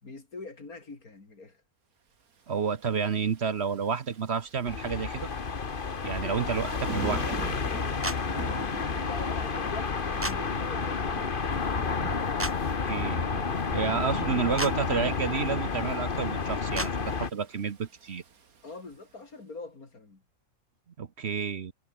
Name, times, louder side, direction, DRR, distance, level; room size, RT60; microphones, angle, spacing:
voice 1, 0.0-1.6 9.0-11.2 18.6-20.2, left 3 dB, 75° left, 4.2 m, -43 dB
voice 2, 2.5-5.3 6.0-7.3 12.8-13.2 13.7-18.2 21.0-21.7, right 6 dB, 50° right, 1.2 m, -30 dB
Thunder / Rain, 2.5-19.1, right 5 dB, 75° right, 2.5 m, -44 dB
sound 1, 4.6-17.3, left 5 dB, 40° left, 1.4 m, -30 dB
sound 2, 8.0-8.2 10.2-10.4 12.4-12.5 14.6-14.7 16.7-16.9, right 1 dB, 10° right, 1.7 m, -31 dB
omnidirectional pair, 1.5 m